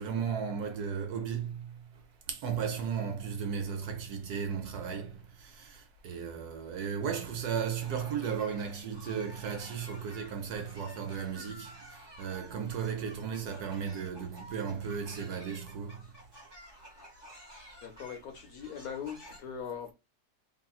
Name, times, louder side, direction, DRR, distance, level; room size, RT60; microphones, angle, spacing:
voice 1, 0.0-1.7 2.3-11.7 12.2-16.0, right 7 dB, 70° right, 1.0 m, -35 dB
sound 1, 7.8-19.4, equal, 20° right, 0.7 m, -52 dB
voice 2, 17.8-19.9, left 7 dB, 65° left, 1.0 m, -40 dB
2.9 x 2.7 x 2.3 m
omnidirectional pair, 1.9 m